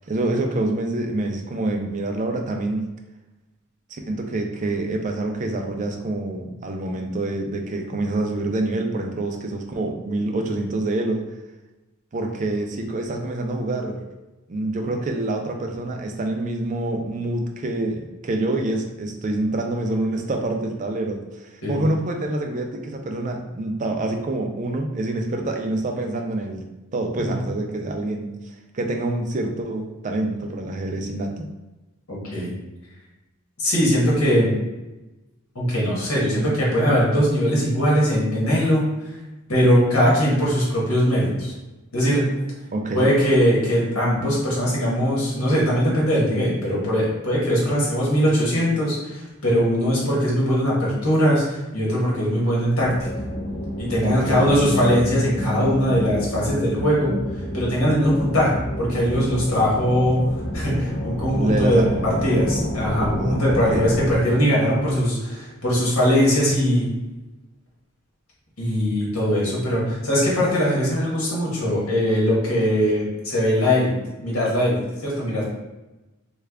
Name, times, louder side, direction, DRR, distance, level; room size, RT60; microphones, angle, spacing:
voice 1, 0.1-2.9 3.9-11.2 12.1-14.0 14.5-26.6 26.9-28.3 28.7-31.5 42.7-43.1 54.0-54.5 61.3-62.0 63.0-63.9, right 2 dB, 35° right, 3 dB, 0.4 m, -26 dB
voice 2, 32.1-32.5 33.6-34.5 35.5-38.8 39.5-41.5 41.9-42.3 42.9-53.1 53.8-57.1 57.5-60.2 60.5-66.9 68.6-73.9 74.2-75.5, equal, 80° left, -5 dB, 1.4 m, -21 dB
sound 1, 52.8-64.2, equal, 35° left, 0.8 m, -29 dB
3.3 x 2.3 x 3.5 m, 1.1 s
head